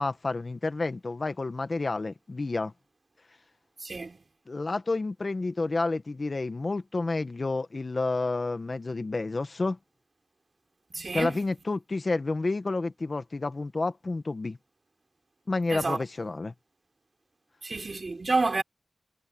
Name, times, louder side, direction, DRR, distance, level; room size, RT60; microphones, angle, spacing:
voice 1, 0.0-2.7 4.5-9.8 11.1-14.6 15.5-16.5, left 3 dB, 50° left, 1.5 m, -30 dB
voice 2, 3.8-4.2 10.9-11.4 15.7-16.0 17.6-18.6, right 3 dB, 55° right, 4.7 m, -29 dB
wide cardioid pair, 70°, 0 cm